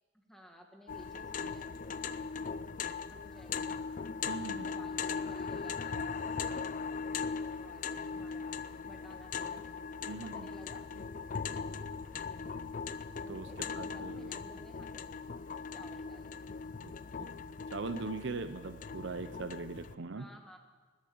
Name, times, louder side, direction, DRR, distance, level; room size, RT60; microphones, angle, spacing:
voice 1, 0.1-2.5 3.1-3.8 4.5-6.2 7.6-9.9 10.2-10.9 13.2-15.1 15.7-16.4 20.1-20.6, equal, ahead, 2 dB, 1.6 m, -55 dB
sound 1, 0.9-19.9, left 5 dB, 40° left, 0.4 m, -39 dB
voice 2, 4.3-4.7 10.1-10.5 13.3-13.5 13.7-14.4 16.8-16.9 17.2-17.3 17.7-20.3, right 3 dB, 60° right, 10 dB, 0.7 m, -40 dB
20.0 x 7.3 x 8.6 m, 1.4 s
head